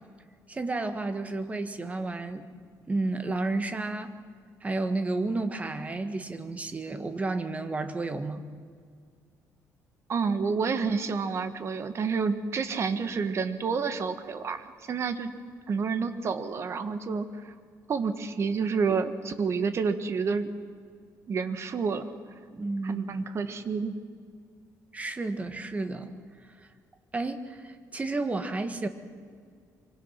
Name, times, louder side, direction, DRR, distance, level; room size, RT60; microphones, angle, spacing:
voice 1, 0.5-2.5 2.9-4.1 4.6-8.4 22.5-23.1 24.9-26.1 27.1-28.9, right 2 dB, 20° right, 8 dB, 1.7 m, -31 dB
voice 2, 10.1-15.3 15.7-17.5 17.9-20.5 21.3-22.1 22.8-23.9, right 5 dB, 45° right, 10 dB, 1.6 m, -29 dB
25.5 x 24.0 x 5.9 m, 2.1 s
cardioid pair, 130°, 6 cm